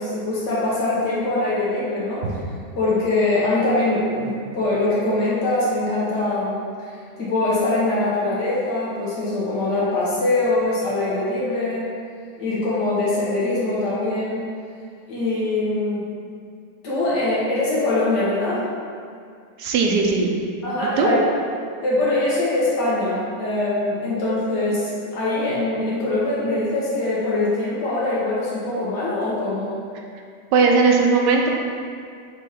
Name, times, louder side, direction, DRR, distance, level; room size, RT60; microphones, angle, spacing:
voice 1, 0.0-2.3 2.8-6.9 7.2-11.9 12.4-14.5 15.1-16.0 16.8-18.6 20.6-21.2 21.8-29.8, left 2 dB, 80° left, -8 dB, 1.8 m, -23 dB
voice 2, 19.6-20.3 21.0-21.1 30.5-31.5, right 4 dB, 90° right, 1 dB, 1.3 m, -17 dB
5.2 x 3.2 x 5.5 m, 2.2 s
omnidirectional pair, 1.8 m